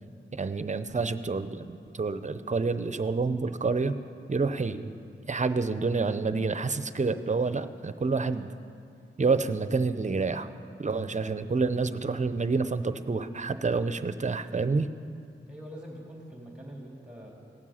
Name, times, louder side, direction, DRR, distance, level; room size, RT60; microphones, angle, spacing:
voice 1, 0.3-4.0 4.3-5.0 5.3-8.5 9.2-10.5 10.8-14.9, right 4 dB, 35° right, 12 dB, 0.6 m, -28 dB
voice 2, 15.4-17.3, equal, 5° right, -3 dB, 3.8 m, -44 dB
17.5 x 7.4 x 5.6 m, 2.4 s
cardioid pair, 45°, 20 cm